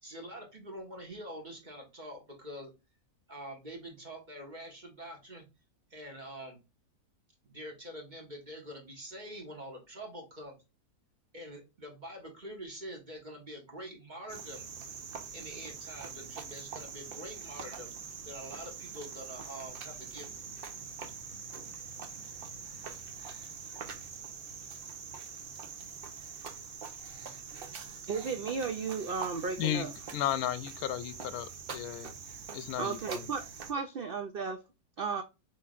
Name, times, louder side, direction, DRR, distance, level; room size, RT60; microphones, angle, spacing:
voice 1, 0.0-2.7 3.3-5.5 5.9-6.6 7.4-10.6 11.3-14.7 15.3-17.9 18.2-20.3, equal, 30° right, 1.4 m, -45 dB
Cricket, 14.3-33.7, right 6 dB, 50° right, 0.7 m, -44 dB
voice 2, 28.1-29.9 32.8-34.6 35.0-35.2, right 5 dB, 90° right, 0.4 m, -34 dB
voice 3, 30.1-32.1 32.5-33.2, left 11 dB, 75° left, 1.0 m, -34 dB
5.9 x 3.1 x 2.4 m
omnidirectional pair, 1.6 m